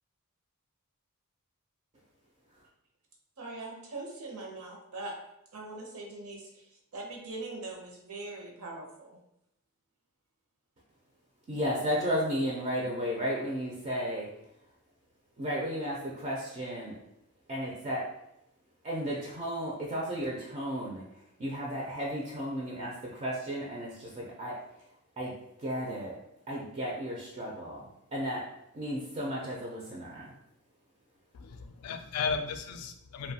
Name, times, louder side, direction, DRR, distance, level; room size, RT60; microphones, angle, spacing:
voice 1, 3.4-5.1 5.5-6.6 6.9-9.2, right 2 dB, 75° right, 0 dB, 0.7 m, -41 dB
voice 2, 11.5-14.3 15.4-17.0 17.5-18.1 18.8-21.0 21.4-24.6 25.2-25.3 25.6-26.2 26.5-28.5 28.7-30.3, equal, 30° right, -4 dB, 0.4 m, -34 dB
voice 3, 31.3-33.3, left 5 dB, 85° left, 7 dB, 0.3 m, -35 dB
2.6 x 2.2 x 2.7 m, 0.79 s
head